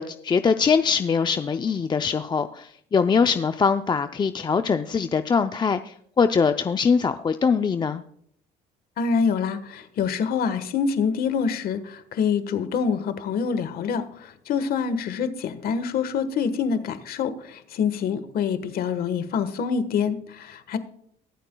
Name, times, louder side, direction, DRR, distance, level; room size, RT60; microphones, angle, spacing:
voice 1, 0.0-8.0, left 5 dB, 25° left, 8 dB, 0.5 m, -22 dB
voice 2, 9.0-20.8, left 6 dB, 65° left, 11 dB, 1.3 m, -26 dB
23.5 x 8.6 x 2.3 m, 0.66 s
cardioid pair, 110°, 17 cm